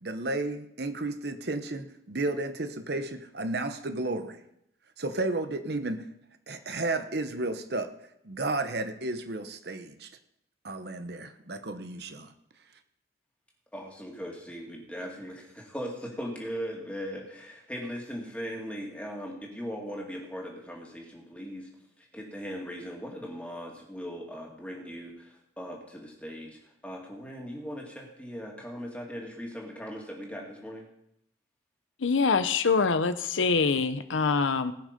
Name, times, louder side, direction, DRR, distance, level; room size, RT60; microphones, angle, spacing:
voice 1, 0.0-4.4 5.0-6.0 6.5-7.9 8.2-10.1 10.6-12.3, right 2 dB, 55° right, 8 dB, 0.9 m, -32 dB
voice 2, 13.7-15.3 15.7-15.9 16.2-21.7 22.1-30.8, equal, 5° left, -2 dB, 2.4 m, -39 dB
voice 3, 32.0-34.7, left 4 dB, 85° left, 12 dB, 0.7 m, -24 dB
19.0 x 6.4 x 5.2 m, 0.78 s
head